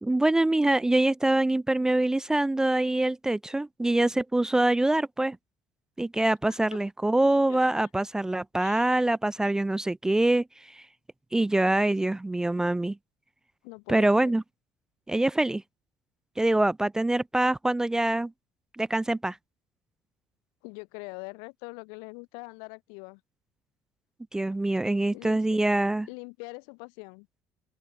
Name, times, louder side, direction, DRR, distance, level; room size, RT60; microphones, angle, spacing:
voice 1, 0.0-5.4 6.0-10.8 11.3-13.0 13.9-14.4 15.1-15.6 16.4-18.3 18.8-19.4 24.3-26.1, right 2 dB, 10° right, 0.4 m, -24 dB
voice 2, 8.6-9.1 13.6-14.4 20.6-23.2 25.1-25.6 26.1-27.3, left 39 dB, 85° left, 3.0 m, -43 dB
open air
cardioid pair, 115°, 7 cm